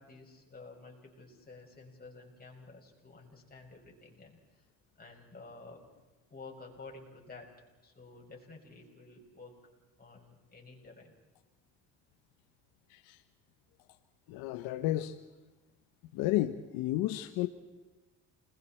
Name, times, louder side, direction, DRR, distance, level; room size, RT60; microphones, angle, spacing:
voice 1, 0.0-4.4 5.0-5.8 6.3-7.5 7.8-9.6 10.0-11.1, left 3 dB, 25° left, 6.7 m, -51 dB
voice 2, 14.3-15.2 16.1-17.5, left 15 dB, 85° left, 1.1 m, -32 dB
29.5 x 21.5 x 4.5 m
supercardioid pair, 85°, 35 cm